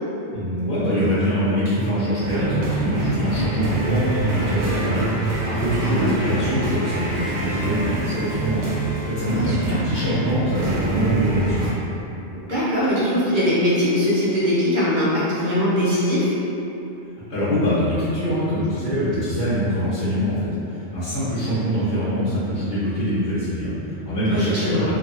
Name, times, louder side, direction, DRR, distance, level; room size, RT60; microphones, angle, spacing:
voice 1, 0.3-11.6 17.3-25.0, equal, 55° left, -13 dB, 1.0 m, -23 dB
sound 1, 2.2-11.7, right 2 dB, 85° right, 0.9 m, -26 dB
voice 2, 9.4-9.8 12.3-16.3 24.3-24.9, left 1 dB, 45° right, -9 dB, 0.8 m, -21 dB
2.7 x 2.5 x 2.5 m, 3.0 s
omnidirectional pair, 1.2 m